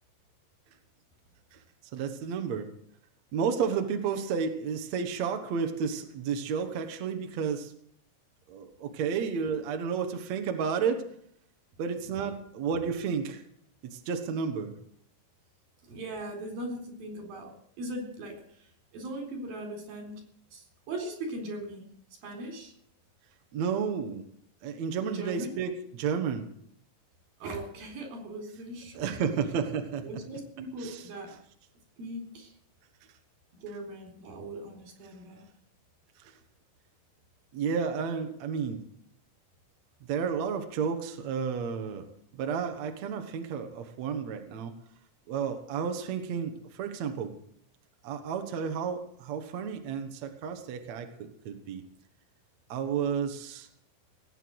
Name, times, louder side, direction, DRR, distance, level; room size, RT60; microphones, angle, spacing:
voice 1, 1.9-2.7 3.3-7.7 8.5-11.0 11.8-13.4 13.8-14.7 23.5-24.2 24.6-26.5 28.9-30.2 30.8-31.0 36.2-36.3 37.5-38.8 40.0-42.1 42.3-44.7 45.3-47.3 48.0-51.8 52.7-53.7, right 6 dB, 60° right, 6 dB, 2.4 m, -32 dB
voice 2, 15.8-20.2 20.5-21.9 22.2-22.7 25.1-25.5 27.4-29.2 30.0-31.3 32.0-32.5 33.6-35.4, right 1 dB, 85° right, 3 dB, 5.8 m, -39 dB
19.0 x 9.1 x 7.9 m, 0.68 s
omnidirectional pair, 4.0 m